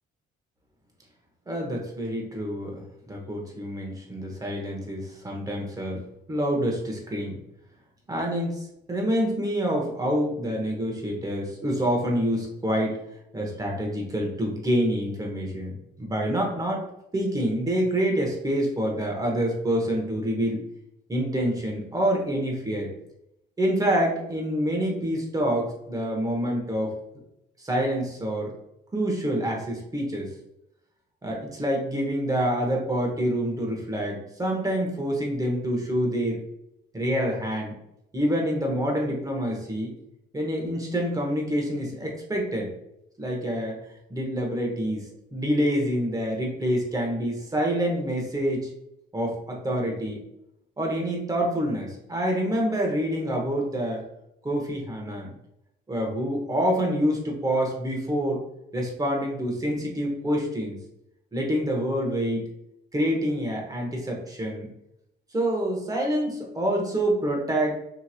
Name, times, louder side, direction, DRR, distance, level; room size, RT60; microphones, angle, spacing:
voice 1, 1.5-2.8 3.1-6.0 6.3-7.4 8.1-13.0 13.3-16.9 17.1-20.6 21.1-22.9 23.6-26.9 27.6-28.5 28.9-30.3 31.2-36.4 36.9-37.8 38.1-39.9 40.3-42.7 43.2-43.8 44.1-45.1 45.3-48.7 49.1-50.2 50.8-54.0 54.4-55.3 55.9-58.4 58.7-60.8 61.3-62.5 62.9-64.7 65.3-67.8, equal, 15° right, -1 dB, 0.9 m, -27 dB
2.9 x 2.9 x 2.4 m, 0.82 s
cardioid pair, 90°, 20 cm